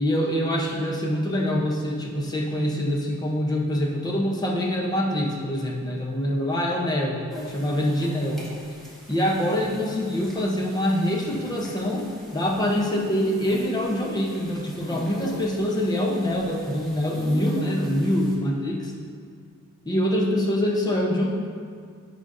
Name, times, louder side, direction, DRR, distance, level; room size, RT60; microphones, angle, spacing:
voice 1, 0.0-8.4 9.1-18.9 19.9-21.3, left 1 dB, 20° left, -1 dB, 0.7 m, -25 dB
sound 1, 7.3-18.3, right 1 dB, ahead, 1.1 m, -41 dB
11.5 x 5.1 x 2.6 m, 2.2 s
head